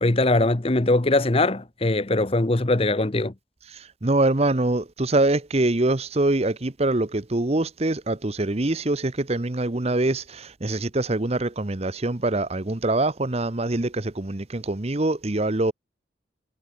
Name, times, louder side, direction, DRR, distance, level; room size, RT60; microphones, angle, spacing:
voice 1, 0.0-3.3, left 2 dB, 30° left, 0.9 m, -21 dB
voice 2, 4.0-15.7, right 2 dB, 35° right, 1.0 m, -24 dB
head